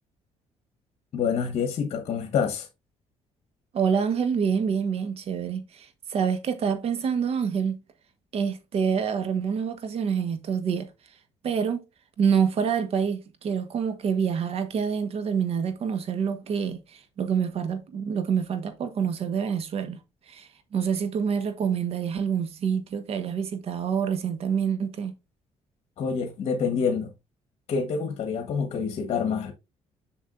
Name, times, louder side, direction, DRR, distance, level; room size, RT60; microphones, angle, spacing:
voice 1, 1.1-2.7 26.0-27.1 27.7-29.5, left 6 dB, 60° left, 1.4 m, -27 dB
voice 2, 3.7-7.8 8.3-10.9 11.4-11.8 12.2-20.0 20.3-25.1, right 7 dB, 60° right, 1.4 m, -27 dB
7.1 x 6.2 x 2.5 m
cardioid pair, 105°, 12 cm